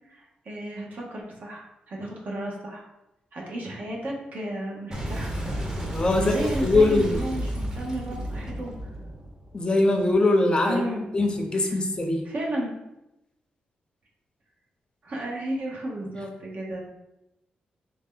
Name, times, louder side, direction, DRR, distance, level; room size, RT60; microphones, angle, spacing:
voice 1, 0.1-1.6 1.9-2.8 3.3-5.6 6.1-8.9 10.6-11.1 11.5-11.8 12.2-12.7 15.0-16.8, right 1 dB, 60° right, -2 dB, 1.0 m, -33 dB
Boom, 4.9-10.1, right 1 dB, 20° right, 0.8 m, -32 dB
voice 2, 5.9-7.2 9.5-10.8 11.1-12.2, left 2 dB, 30° left, 4 dB, 0.6 m, -22 dB
3.2 x 2.8 x 3.7 m, 0.92 s
cardioid pair, 80°, 3 cm